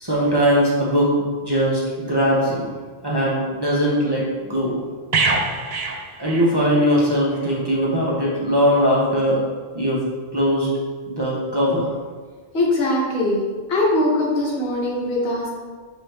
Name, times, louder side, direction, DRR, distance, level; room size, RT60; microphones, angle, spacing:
voice 1, 0.0-2.7 3.0-4.8 6.2-9.4 9.7-10.0 10.3-10.7 11.1-11.9, equal, 25° right, -6 dB, 0.6 m, -20 dB
sound 1, 5.1-7.0 7.3-7.5, right 3 dB, 65° right, 0.4 m, -24 dB
voice 2, 12.5-13.4 13.7-15.5, left 1 dB, 60° left, -4 dB, 1.2 m, -21 dB
5.9 x 2.7 x 3.2 m, 1.5 s
omnidirectional pair, 1.2 m